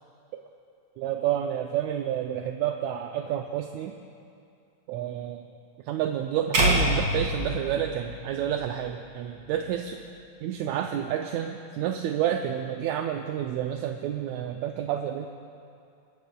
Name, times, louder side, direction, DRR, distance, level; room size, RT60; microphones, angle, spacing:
voice 1, 1.0-3.9 4.9-5.5 5.8-10.0 10.4-15.3, right 10 dB, 80° right, 4 dB, 1.8 m, -29 dB
sound 1, 6.5-8.8, right 1 dB, 40° right, 2.7 m, -26 dB
24.5 x 12.0 x 2.3 m, 2.4 s
omnidirectional pair, 3.4 m